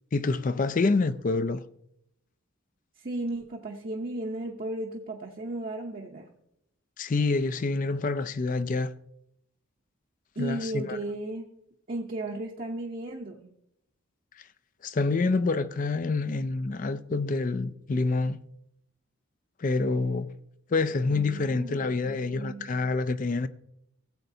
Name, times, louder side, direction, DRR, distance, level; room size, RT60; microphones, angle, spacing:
voice 1, 0.1-1.6 7.0-8.9 10.4-11.0 14.8-18.4 19.6-20.3 20.7-23.5, left 3 dB, 35° left, 0.4 m, -27 dB
voice 2, 3.0-6.3 10.4-11.5 11.9-13.5 21.1-22.7, right 1 dB, 40° right, 0.8 m, -35 dB
16.0 x 7.7 x 2.7 m
head